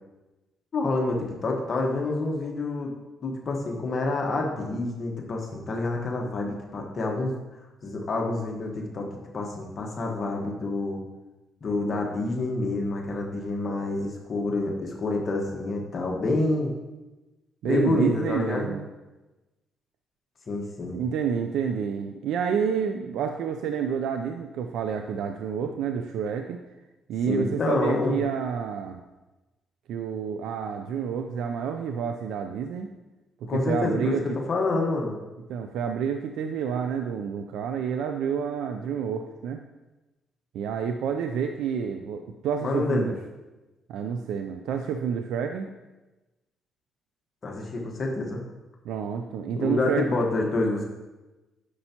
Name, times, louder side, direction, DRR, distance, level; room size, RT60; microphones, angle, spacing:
voice 1, 0.7-2.9 3.2-7.4 7.8-9.1 9.3-11.0 11.6-16.7 17.6-18.7 20.5-21.0 27.3-28.1 33.4-35.2 42.6-43.1 47.4-48.4 49.5-50.8, left 2 dB, 45° left, 0 dB, 1.3 m, -27 dB
voice 2, 17.6-18.8 20.9-26.6 27.1-29.0 29.9-32.9 33.5-34.4 35.5-39.6 40.5-43.1 43.9-45.7 48.8-50.1, right 7 dB, 85° right, 6 dB, 0.4 m, -29 dB
9.6 x 6.8 x 2.9 m, 1.1 s
cardioid pair, 90°, 0 cm